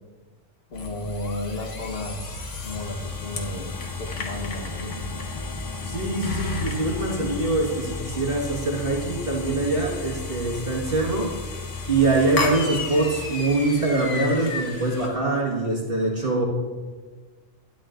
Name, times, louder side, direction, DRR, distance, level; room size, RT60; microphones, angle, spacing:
sound 1, 0.7-15.1, left 3 dB, 75° left, 1.6 m, -33 dB
voice 1, 0.7-2.2 2.6-5.1, left 1 dB, 55° left, 1 dB, 1.4 m, -33 dB
sound 2, 2.0-14.6, left 1 dB, 30° left, 0.4 m, -42 dB
voice 2, 5.8-11.3 11.9-16.4, right 2 dB, 50° right, -4 dB, 1.8 m, -24 dB
12.0 x 11.5 x 2.5 m, 1.4 s
omnidirectional pair, 1.3 m